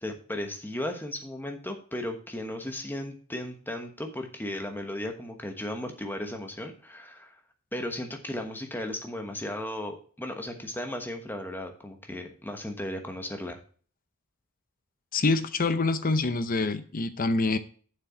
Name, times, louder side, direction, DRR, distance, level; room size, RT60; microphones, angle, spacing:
voice 1, 0.0-7.3 7.7-13.6, left 1 dB, 10° left, 4 dB, 1.2 m, -35 dB
voice 2, 15.1-17.6, left 3 dB, 40° left, 12 dB, 0.6 m, -26 dB
7.6 x 6.6 x 4.4 m, 0.43 s
head